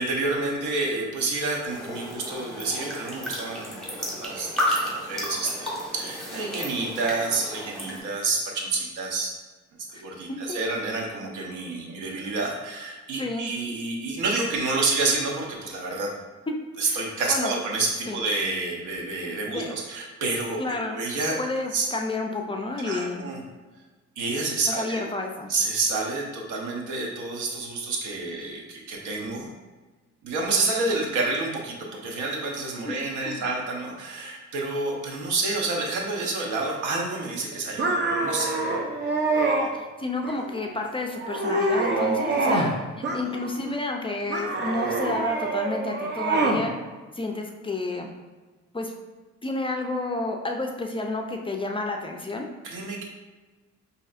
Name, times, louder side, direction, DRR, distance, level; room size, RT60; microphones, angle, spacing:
voice 1, 0.0-9.3 9.9-16.1 16.8-20.6 21.0-21.4 21.7-21.9 22.8-23.4 24.2-25.0 25.5-29.5 30.2-37.8 38.2-38.6 52.6-53.0, right 3 dB, 85° right, 0 dB, 0.8 m, -29 dB
sound 1, 1.6-8.0, left 1 dB, ahead, 1.4 m, -32 dB
voice 2, 13.2-13.5 16.5-16.6 16.8-17.5 18.1-18.2 19.4-19.8 20.6-21.0 21.4-23.3 24.7-25.5 32.9-33.0 33.2-33.5 39.7-42.7 43.1-46.7 47.1-48.1 48.7-48.9 49.4-52.5, left 2 dB, 20° left, 2 dB, 0.4 m, -30 dB
sound 2, 37.8-39.7 40.2-40.7 41.1-42.7 43.0-43.7 44.3-46.6, right 2 dB, 35° right, 0.7 m, -26 dB
5.2 x 2.7 x 2.5 m, 1.3 s
cardioid pair, 90°, 30 cm